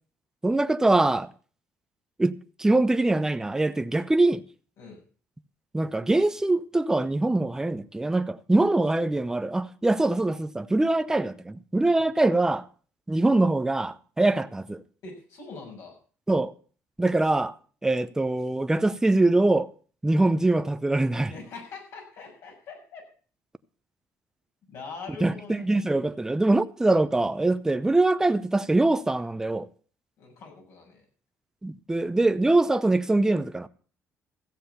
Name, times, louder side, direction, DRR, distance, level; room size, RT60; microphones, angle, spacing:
voice 1, 0.4-1.3 2.2-4.4 5.7-12.7 13.1-14.8 16.3-16.5 17.0-17.5 17.8-19.7 20.0-21.3 25.2-29.7 31.6-33.7, right 2 dB, 10° right, 0.7 m, -23 dB
voice 2, 15.0-15.9 21.3-23.0 24.7-25.7 30.2-31.0, left 4 dB, 70° left, 6.8 m, -43 dB
15.5 x 7.5 x 6.9 m
cardioid pair, 100°, 5 cm